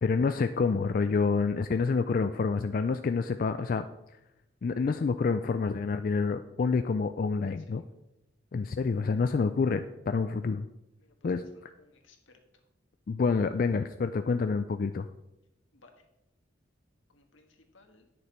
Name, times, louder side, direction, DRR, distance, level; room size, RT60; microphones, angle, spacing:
voice 1, 0.0-3.8 4.6-7.8 8.5-10.7 11.2-11.7 13.1-15.1, left 4 dB, 45° left, 9 dB, 0.3 m, -28 dB
voice 2, 11.0-11.3 11.5-12.4 15.7-15.9 17.1-18.1, left 3 dB, 80° left, 4 dB, 1.4 m, -61 dB
9.3 x 6.7 x 4.3 m, 0.89 s
head